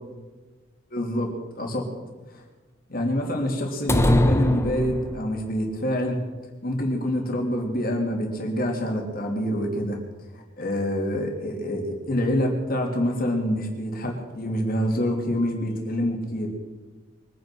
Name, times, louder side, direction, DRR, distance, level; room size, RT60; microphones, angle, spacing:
voice 1, 0.9-1.8 2.3-2.4 2.9-6.2 6.6-10.0 10.6-16.5, equal, 50° left, 1 dB, 3.2 m, -26 dB
sound 1, 3.9-5.5, left 1 dB, 15° left, 0.9 m, -21 dB
23.5 x 9.4 x 6.2 m, 1.3 s
head